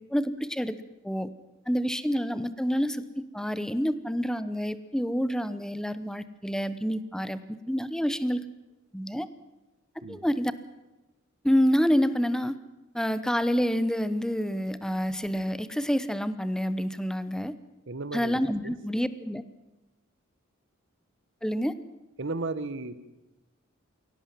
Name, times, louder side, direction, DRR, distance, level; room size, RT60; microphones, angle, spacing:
voice 1, 0.1-0.8 1.0-1.3 1.7-7.4 7.7-8.4 8.9-9.3 10.1-10.5 11.4-12.6 12.9-17.5 18.1-19.4 21.4-21.7, equal, 5° left, 13 dB, 0.8 m, -28 dB
voice 2, 17.9-18.3 18.6-18.7 22.2-23.0, right 3 dB, 60° right, 13 dB, 1.3 m, -34 dB
23.0 x 17.5 x 7.4 m, 1.0 s
head